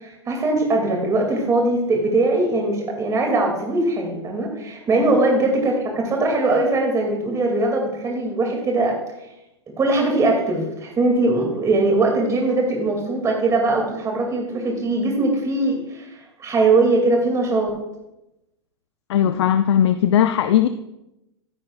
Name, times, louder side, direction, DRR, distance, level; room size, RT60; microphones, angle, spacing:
voice 1, 0.0-8.9 9.8-17.7, right 2 dB, 20° right, 1 dB, 2.4 m, -21 dB
voice 2, 19.1-20.7, left 10 dB, 65° left, 10 dB, 0.5 m, -18 dB
13.5 x 10.5 x 2.4 m, 0.92 s
hypercardioid pair, 105°, 15 cm